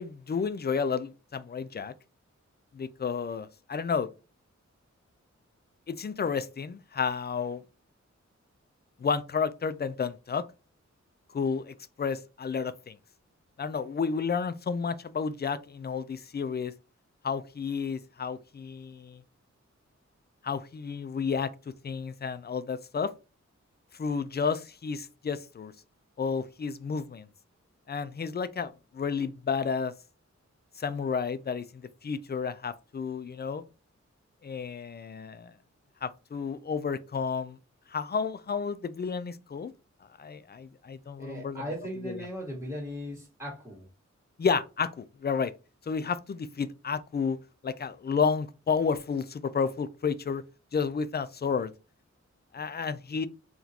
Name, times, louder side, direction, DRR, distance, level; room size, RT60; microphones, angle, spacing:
voice 1, 0.0-1.9 2.7-4.1 5.9-7.6 9.0-10.4 11.3-12.9 13.6-16.7 17.2-19.2 20.4-21.5 21.8-23.1 24.0-25.7 26.2-27.3 27.9-29.9 30.8-33.6 34.4-35.5 36.0-37.6 37.9-39.7 40.2-41.6 42.0-42.2 44.4-45.5 45.9-47.4 47.6-50.4 50.7-51.7 52.5-53.3, left 5 dB, 35° left, 0.4 m, -31 dB
voice 2, 41.2-43.9, equal, 10° right, 1.4 m, -38 dB
3.6 x 2.4 x 2.8 m
wide cardioid pair, 70°, 29 cm